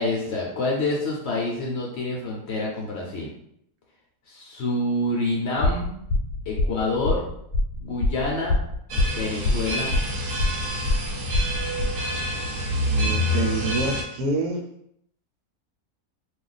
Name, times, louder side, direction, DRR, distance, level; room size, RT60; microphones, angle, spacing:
voice 1, 0.0-3.3 4.3-5.9 6.5-7.2 7.8-8.6 9.1-9.9, left 2 dB, 60° left, -3 dB, 0.8 m, -27 dB
sound 1, 5.6-11.8, left 2 dB, 80° left, 1.1 m, -24 dB
sound 2, 8.9-14.0, equal, 65° right, 1.0 m, -27 dB
voice 2, 12.9-14.6, right 2 dB, 80° right, 2 dB, 1.1 m, -27 dB
2.5 x 2.4 x 3.9 m, 0.73 s
omnidirectional pair, 1.6 m